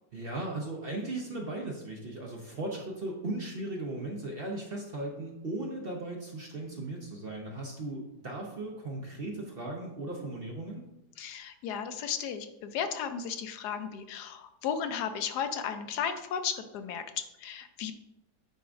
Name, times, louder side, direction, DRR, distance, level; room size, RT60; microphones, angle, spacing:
voice 1, 0.1-10.9, right 2 dB, 50° right, 0 dB, 0.8 m, -37 dB
voice 2, 11.2-17.9, left 7 dB, 80° left, 8 dB, 1.2 m, -35 dB
9.2 x 4.7 x 2.5 m, 0.92 s
omnidirectional pair, 1.7 m